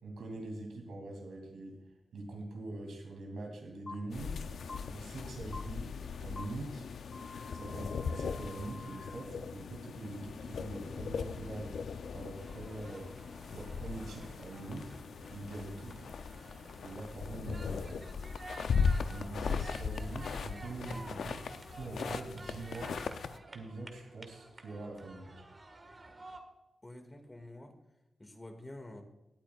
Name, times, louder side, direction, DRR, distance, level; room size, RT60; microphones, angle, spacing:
voice 1, 0.0-1.8 2.1-4.4 4.9-5.9 6.2-6.9 7.5-11.8 12.1-13.1 13.5-14.9 15.3-16.0 16.8-18.1 19.0-21.4 21.7-23.0 23.5-25.5, right 2 dB, 85° right, 1 dB, 2.7 m, -43 dB
sound 1, 3.9-4.0 4.7-4.8 5.5-5.6 6.4-6.5 7.1-9.2, left 3 dB, 40° left, 1.1 m, -47 dB
sound 2, 4.1-23.4, left 5 dB, 75° left, 0.5 m, -38 dB
sound 3, 12.3-26.4, right 2 dB, 35° right, 1.6 m, -52 dB
voice 2, 26.8-27.7 28.2-29.0, left 1 dB, 20° left, 6 dB, 2.0 m, -48 dB
18.0 x 8.9 x 2.4 m, 0.98 s
cardioid pair, 60°, 0 cm